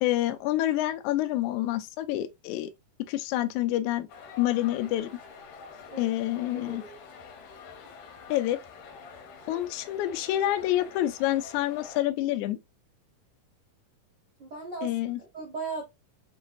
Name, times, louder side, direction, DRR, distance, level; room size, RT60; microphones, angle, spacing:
voice 1, 0.0-2.7 3.0-4.1 4.4-5.1 6.0-6.8 8.3-8.6 9.5-12.6 14.8-15.2, left 14 dB, 90° left, 1.7 m, -27 dB
sound 1, 4.1-12.0, left 5 dB, 70° left, 2.4 m, -47 dB
voice 2, 6.6-7.0 14.4-15.8, right 4 dB, 80° right, 0.9 m, -38 dB
6.1 x 3.0 x 2.5 m
omnidirectional pair, 4.1 m